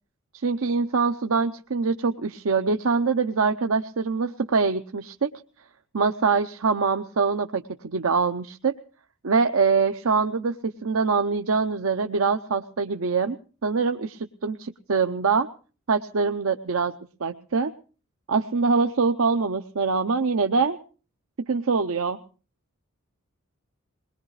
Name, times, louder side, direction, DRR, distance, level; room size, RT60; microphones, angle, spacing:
voice 1, 0.3-5.3 5.9-8.8 9.2-15.5 15.9-17.0 17.2-17.7 18.3-20.8 21.4-22.2, right 4 dB, 80° right, 6 dB, 0.7 m, -24 dB
22.0 x 20.0 x 3.2 m, 0.38 s
head